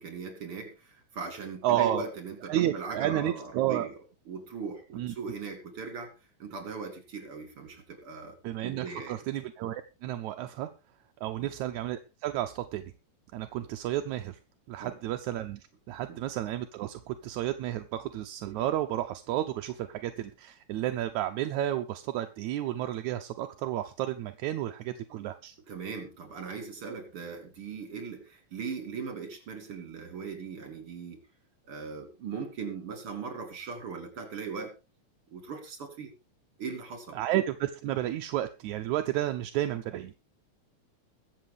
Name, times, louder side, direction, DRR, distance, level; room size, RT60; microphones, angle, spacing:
voice 1, 0.0-3.9 4.3-6.1 6.4-8.4 8.6-9.2 11.4-11.5 14.8-14.9 16.1-16.2 25.7-31.2 31.6-34.7 35.3-36.1 36.6-37.2, right 5 dB, 50° right, 6 dB, 4.2 m, -39 dB
voice 2, 1.6-2.1 2.5-3.9 4.9-5.1 8.4-10.7 11.2-12.9 13.3-14.4 14.7-25.6 37.1-40.1, right 13 dB, 80° right, 7 dB, 2.2 m, -31 dB
22.0 x 7.9 x 3.6 m, 0.29 s
omnidirectional pair, 3.4 m